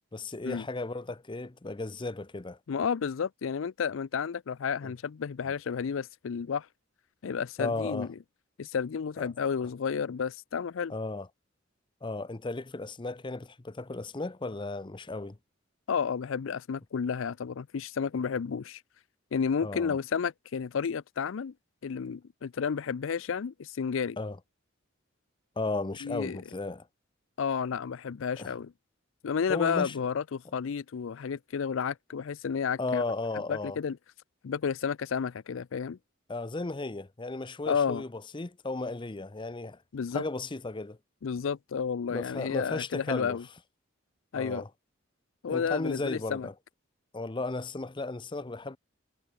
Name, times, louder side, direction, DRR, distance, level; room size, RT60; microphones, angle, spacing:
voice 1, 0.1-2.6 4.8-4.9 7.6-8.1 9.2-9.3 10.9-11.3 12.0-15.4 19.6-20.0 24.2-24.4 25.6-26.9 28.4-28.5 29.5-29.9 32.8-33.8 36.3-39.8 40.1-41.0 42.1-43.4 44.3-44.7 45.5-46.5 47.1-48.8, left 2 dB, 25° left, 0.7 m, -35 dB
voice 2, 2.7-6.7 7.2-8.1 8.6-10.9 15.9-18.8 19.3-21.5 21.8-24.2 26.0-26.4 27.4-28.7 29.2-33.0 33.5-34.0 34.4-36.0 37.7-38.0 39.9-40.2 41.2-43.4 44.3-44.6 45.4-46.5, left 6 dB, 70° left, 0.4 m, -31 dB
head